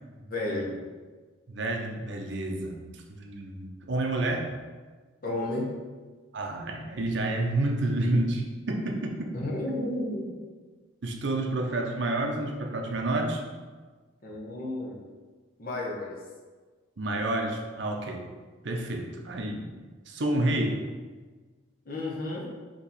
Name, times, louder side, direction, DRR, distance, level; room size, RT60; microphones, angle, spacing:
voice 1, 0.2-0.7 5.2-5.7 9.3-10.4 14.2-15.0 15.6-16.2 21.8-22.5, left 1 dB, 45° left, -3 dB, 0.9 m, -32 dB
voice 2, 1.5-4.5 6.3-9.3 11.0-13.4 17.0-18.3 18.6-19.7 20.1-20.8, right 2 dB, 60° right, 2 dB, 0.6 m, -29 dB
4.4 x 3.0 x 4.0 m, 1.4 s
head